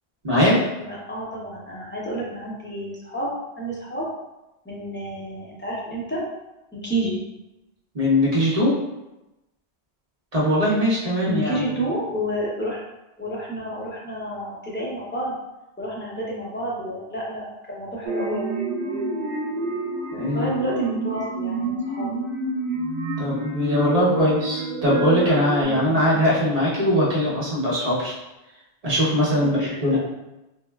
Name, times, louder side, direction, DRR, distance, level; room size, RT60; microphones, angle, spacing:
voice 1, 0.2-0.6 7.9-8.7 10.3-11.8 20.1-20.5 23.2-28.1 28.8-29.6 29.8-30.0, equal, 40° right, -7 dB, 0.8 m, -21 dB
voice 2, 0.8-4.1 4.6-6.2 6.7-7.2 11.3-12.8 13.2-15.4 15.8-18.5 20.3-22.2 25.6-26.2 29.4-30.0, right 1 dB, 20° left, -6 dB, 0.3 m, -30 dB
sound 1, 18.0-25.6, right 3 dB, 85° right, 0.9 m, -28 dB
3.4 x 2.0 x 2.2 m, 0.97 s
omnidirectional pair, 1.1 m